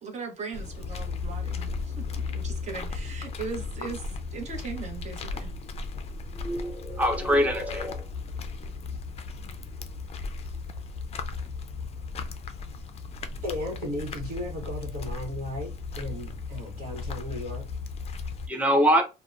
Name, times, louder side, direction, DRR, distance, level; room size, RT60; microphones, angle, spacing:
voice 1, 0.0-4.1 4.3-5.5, right 5 dB, 40° right, 0.9 m, -38 dB
sound 1, 0.5-18.5, left 4 dB, 40° left, 0.4 m, -36 dB
voice 2, 6.4-8.0 18.5-19.0, equal, 10° right, 0.6 m, -23 dB
voice 3, 13.4-15.7 15.9-17.6, left 1 dB, 60° right, 1.1 m, -35 dB
2.7 x 2.1 x 2.3 m
cardioid pair, 110°, 17 cm